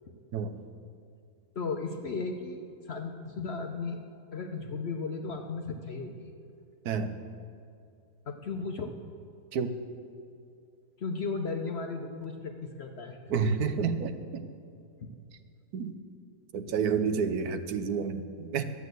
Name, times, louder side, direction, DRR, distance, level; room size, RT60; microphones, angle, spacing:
voice 1, 1.6-4.0 4.3-6.3 8.3-9.0 11.0-12.5 12.8-13.2 15.0-15.1, left 4 dB, 50° left, 4 dB, 0.8 m, -35 dB
voice 2, 13.3-14.4 15.7-15.9 16.5-18.6, right 6 dB, 70° right, 9 dB, 1.2 m, -29 dB
12.5 x 8.1 x 7.8 m, 2.5 s
omnidirectional pair, 1.7 m